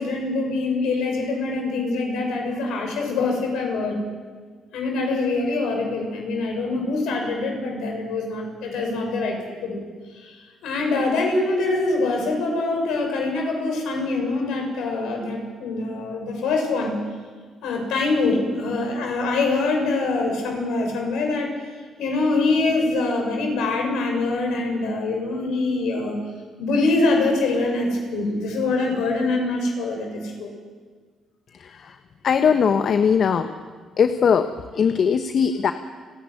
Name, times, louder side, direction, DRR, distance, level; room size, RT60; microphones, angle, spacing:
voice 1, 0.0-4.0 4.7-9.8 10.1-10.4 10.6-17.0 17.6-21.5 22.0-26.2 26.6-30.5, left 3 dB, 75° left, 2 dB, 6.3 m, -24 dB
voice 2, 31.5-32.0 32.2-33.5 34.0-35.7, left 6 dB, 60° left, 9 dB, 1.1 m, -20 dB
30.0 x 10.5 x 9.5 m, 1.5 s
hypercardioid pair, 50°, 0 cm